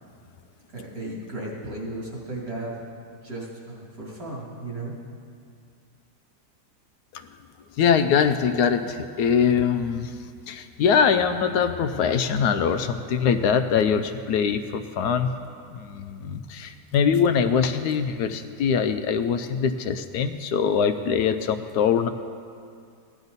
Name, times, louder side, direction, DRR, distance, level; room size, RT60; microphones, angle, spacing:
voice 1, 0.7-2.8 3.2-4.9, right 2 dB, 55° right, -4 dB, 3.1 m, -35 dB
voice 2, 7.8-10.1 10.5-15.3 15.7-22.1, left 7 dB, 75° left, 9 dB, 1.1 m, -23 dB
16.0 x 11.5 x 4.0 m, 2.3 s
omnidirectional pair, 1.8 m